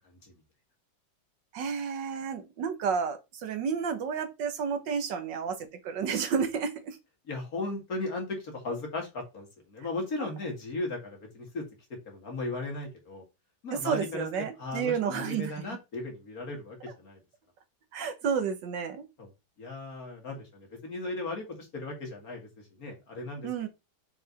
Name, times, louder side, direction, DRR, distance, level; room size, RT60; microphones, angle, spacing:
voice 1, 1.5-7.0 13.7-15.5 17.9-19.0 23.4-23.7, right 6 dB, 85° right, 1.8 m, -31 dB
voice 2, 7.2-11.6 12.0-13.2 13.6-17.2 19.2-19.3 19.6-22.5 22.8-23.7, left 2 dB, 55° left, 2.7 m, -36 dB
6.6 x 4.9 x 4.1 m
omnidirectional pair, 1.9 m